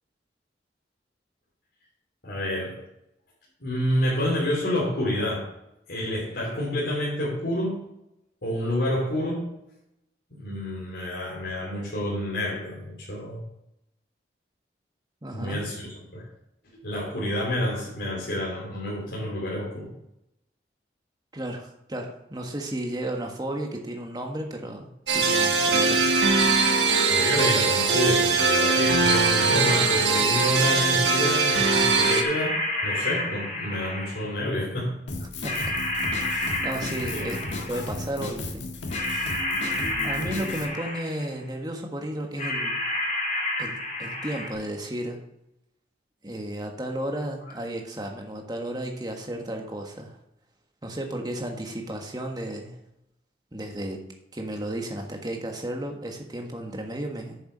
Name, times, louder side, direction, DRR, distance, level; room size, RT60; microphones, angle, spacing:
voice 1, 2.2-2.8 3.6-5.5 5.9-7.9 8.4-9.5 10.3-13.4 15.3-16.3 16.8-19.9 27.1-35.0 37.1-37.6, left 1 dB, 65° left, -6 dB, 3.2 m, -28 dB
voice 2, 15.2-15.6 21.3-26.2 35.4-35.7 36.6-37.4 37.7-38.6 40.0-42.8 43.6-45.2 46.2-50.2 50.8-52.8 53.5-54.0 54.3-57.4, right 1 dB, 20° right, 2 dB, 1.5 m, -33 dB
sound 1, 25.1-32.2, right 4 dB, 80° right, 1.4 m, -21 dB
sound 2, 30.3-30.9 32.0-34.4 35.4-37.9 38.9-41.3 42.4-44.5, left 1 dB, 40° left, 3.6 m, -30 dB
Drum kit, 35.1-40.7, left 2 dB, 85° left, 1.6 m, -35 dB
9.1 x 7.0 x 5.6 m, 0.83 s
head